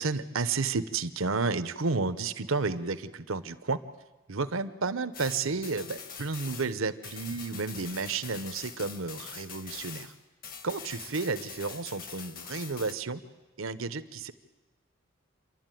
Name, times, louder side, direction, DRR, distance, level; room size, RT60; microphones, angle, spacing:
voice 1, 0.0-3.8 4.3-10.1 10.6-13.2 13.6-14.3, right 4 dB, 70° right, 12 dB, 0.9 m, -31 dB
sound 1, 5.1-10.2 10.4-12.9, left 6 dB, 40° left, 1.2 m, -44 dB
28.0 x 12.0 x 9.1 m, 1.3 s
head